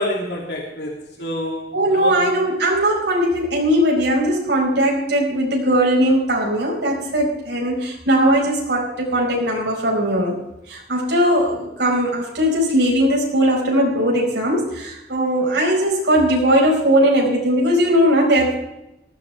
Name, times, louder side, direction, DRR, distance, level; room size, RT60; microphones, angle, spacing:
voice 1, 0.0-2.3, left 1 dB, 70° left, -1 dB, 2.6 m, -28 dB
voice 2, 1.7-10.4 10.7-18.6, equal, 80° right, -1 dB, 5.1 m, -19 dB
19.0 x 14.5 x 3.4 m, 0.90 s
head